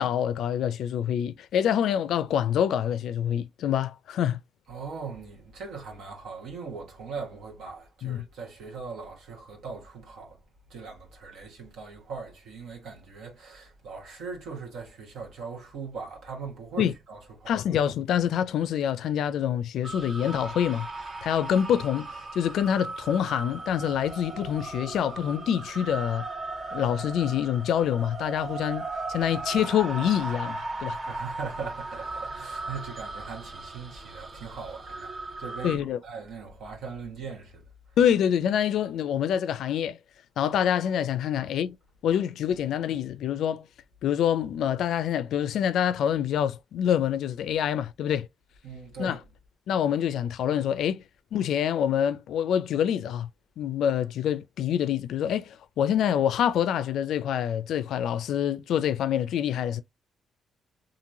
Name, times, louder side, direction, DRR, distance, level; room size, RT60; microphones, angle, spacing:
voice 1, 0.0-4.4 8.0-8.2 16.8-16.9 17.5-20.9 21.2-26.2 26.7-31.0 35.6-36.0 38.0-40.0 40.4-41.7 42.0-43.7 44.0-48.3 49.0-49.2 49.7-51.0 51.3-53.3 53.6-59.8, left 9 dB, 75° left, 0.3 m, -26 dB
voice 2, 4.7-10.4 10.7-17.5 30.9-37.6 48.6-49.2, right 5 dB, 80° right, 1.0 m, -40 dB
sound 1, 19.8-35.8, right 3 dB, 40° right, 0.6 m, -37 dB
3.0 x 2.5 x 2.5 m
cardioid pair, 90°, 0 cm